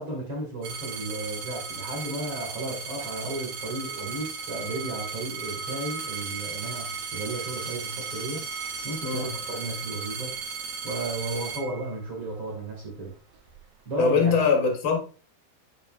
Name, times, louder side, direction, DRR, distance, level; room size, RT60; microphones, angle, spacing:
voice 1, 0.0-10.3 10.8-13.1 13.9-14.3, right 2 dB, 40° right, 2.0 m, -34 dB
sound 1, 0.6-12.4 13.1-13.6, right 5 dB, 60° right, 2.3 m, -36 dB
voice 2, 14.0-15.0, left 5 dB, 75° left, 1.2 m, -22 dB
9.6 x 5.1 x 2.5 m
omnidirectional pair, 5.4 m